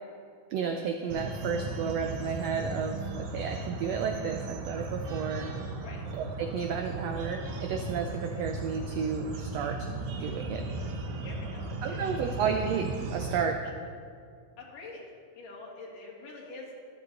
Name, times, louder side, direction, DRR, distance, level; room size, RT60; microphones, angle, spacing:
voice 1, 0.5-5.5 6.1-9.9 10.2-10.6 11.8-13.6, right 6 dB, 85° right, 4 dB, 1.4 m, -32 dB
sound 1, 1.1-13.4, right 3 dB, 70° right, 2.2 m, -36 dB
voice 2, 11.2-12.4 14.6-15.0 15.3-16.7, left 3 dB, 75° left, -3 dB, 3.5 m, -45 dB
13.0 x 12.0 x 4.0 m, 2.2 s
omnidirectional pair, 3.8 m